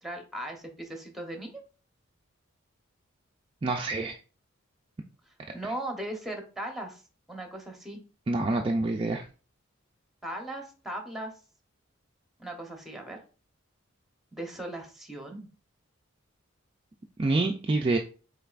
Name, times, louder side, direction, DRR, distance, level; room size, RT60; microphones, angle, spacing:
voice 1, 0.0-1.6 5.5-7.0 7.3-8.0 10.2-11.3 12.4-13.2 14.3-15.5, right 1 dB, ahead, 3 dB, 0.9 m, -38 dB
voice 2, 3.6-4.1 8.3-9.2 17.2-18.0, right 2 dB, 25° right, 2 dB, 0.4 m, -26 dB
5.5 x 3.9 x 2.4 m, 0.36 s
head